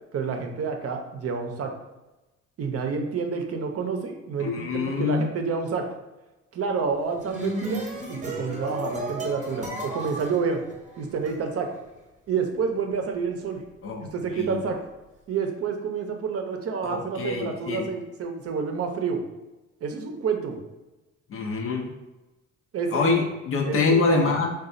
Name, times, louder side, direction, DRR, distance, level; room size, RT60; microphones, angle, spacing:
voice 1, 0.1-1.7 2.6-6.0 6.5-10.6 11.0-11.8 12.3-13.6 14.0-14.9 15.3-19.2 19.8-20.6 22.7-23.1 23.6-24.3, right 5 dB, 50° right, 4 dB, 0.6 m, -29 dB
voice 2, 4.4-5.3 13.8-14.0 16.8-17.8 21.3-21.9 22.9-24.5, left 4 dB, 45° left, 2 dB, 0.5 m, -25 dB
sound 1, 7.0-11.3, right 1 dB, 25° right, 0.9 m, -33 dB
3.9 x 2.3 x 2.5 m, 1.1 s
cardioid pair, 90°, 30 cm